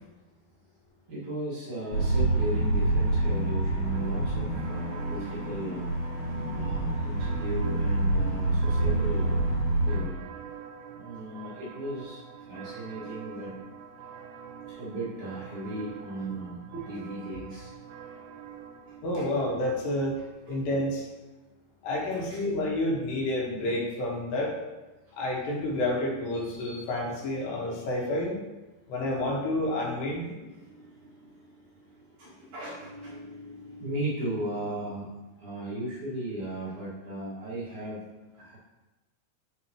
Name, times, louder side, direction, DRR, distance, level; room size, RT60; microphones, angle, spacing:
voice 1, 1.1-5.9 6.5-10.2 10.9-12.2 12.5-13.5 14.7-17.7 19.2-19.3 20.2-20.5 22.1-22.4 30.0-35.1 35.4-38.0 38.3-38.6, right 1 dB, 55° right, -8 dB, 2.8 m, -37 dB
sound 1, 1.9-10.0, right 2 dB, 40° left, 2.6 m, -27 dB
sound 2, 3.9-19.8, right 7 dB, 85° right, 2.9 m, -45 dB
voice 2, 19.0-20.2 20.5-21.0 21.8-24.5 25.2-28.3 28.9-30.3, left 1 dB, 80° left, -3 dB, 3.6 m, -29 dB
12.0 x 5.1 x 3.0 m, 1.1 s
omnidirectional pair, 4.9 m